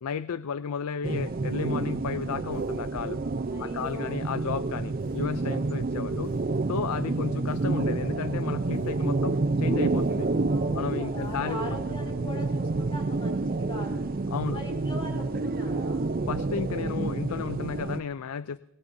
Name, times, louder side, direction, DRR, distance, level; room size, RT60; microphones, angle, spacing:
voice 1, 0.0-3.2 3.6-6.3 6.7-10.3 10.7-11.7 14.3-14.6 16.3-18.6, left 7 dB, 85° left, 15 dB, 0.4 m, -33 dB
sound 1, 1.0-18.0, right 3 dB, 40° right, 0.5 m, -29 dB
Bass guitar, 1.9-11.8, equal, 60° left, 5.6 m, -53 dB
voice 2, 3.5-4.2 6.9-7.4 10.5-14.1 14.5-16.1, equal, 25° left, 1 dB, 3.4 m, -41 dB
21.0 x 18.5 x 2.7 m, 0.96 s
head